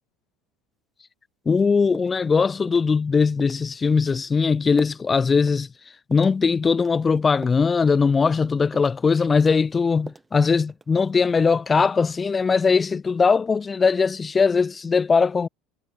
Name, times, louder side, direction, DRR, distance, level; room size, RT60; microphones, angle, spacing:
voice 1, 1.5-5.7 6.1-15.5, left 5 dB, 20° left, 0.6 m, -20 dB
sound 1, 1.5-1.7 1.9-2.3 2.7-2.9 3.4-3.6 4.1-4.3 4.8-5.1 5.5-5.6 6.1-6.4 6.8-7.7 8.1-8.3 8.7-9.1 9.4-10.3 10.7-11.1, right 3 dB, 15° right, 3.9 m, -43 dB
supercardioid pair, 125°, 0 cm